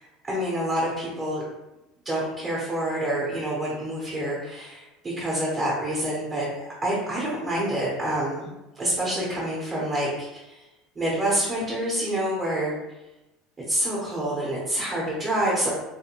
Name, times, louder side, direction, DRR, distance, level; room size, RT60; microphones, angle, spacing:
voice 1, 0.2-1.4 2.0-4.8 5.2-10.4 11.0-12.7 13.7-15.7, right 1 dB, 15° right, -6 dB, 0.8 m, -27 dB
4.0 x 2.2 x 2.9 m, 0.97 s
cardioid pair, 165°, 0 cm